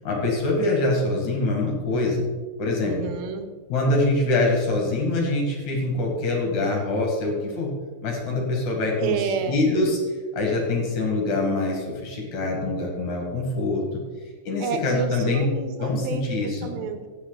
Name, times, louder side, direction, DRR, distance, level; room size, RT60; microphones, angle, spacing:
voice 1, 0.0-2.3 2.6-2.9 3.7-7.7 8.0-9.2 9.5-10.0 10.3-14.0 14.4-15.4 15.8-16.7, left 2 dB, 55° left, 0 dB, 2.8 m, -24 dB
voice 2, 2.8-3.5 9.0-9.6 14.6-17.1, right 6 dB, 85° right, 8 dB, 3.0 m, -30 dB
17.5 x 6.4 x 3.9 m, 1.5 s
omnidirectional pair, 4.8 m